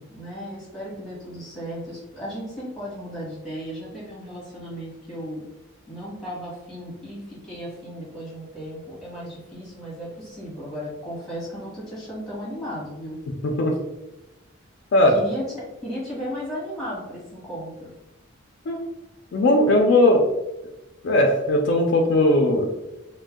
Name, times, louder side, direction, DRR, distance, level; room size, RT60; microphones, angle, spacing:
voice 1, 0.0-5.4 5.9-13.2 15.1-15.5 15.8-17.9, equal, ahead, -8 dB, 1.3 m, -35 dB
voice 2, 13.4-13.7 14.9-15.2 18.7-18.8 19.3-20.2 21.0-22.7, left 1 dB, 60° left, 2 dB, 0.3 m, -18 dB
2.6 x 2.1 x 3.5 m, 0.98 s
head